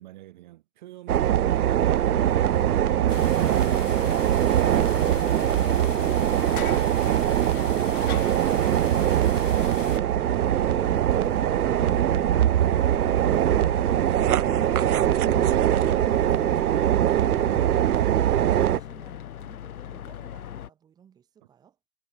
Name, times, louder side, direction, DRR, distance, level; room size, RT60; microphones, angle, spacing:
voice 1, 0.0-2.8 10.3-10.6 12.5-14.4 21.4-21.5, right 15 dB, 30° right, 2.3 m, -48 dB
sound 1, 1.1-18.8, right 11 dB, 85° right, 0.6 m, -22 dB
sound 2, 2.1-20.7, left 10 dB, 80° left, 0.8 m, -41 dB
sound 3, 3.1-10.0, left 10 dB, 60° left, 1.1 m, -42 dB
voice 2, 15.3-21.8, right 8 dB, 10° right, 2.3 m, -53 dB
hypercardioid pair, 160°, 43 cm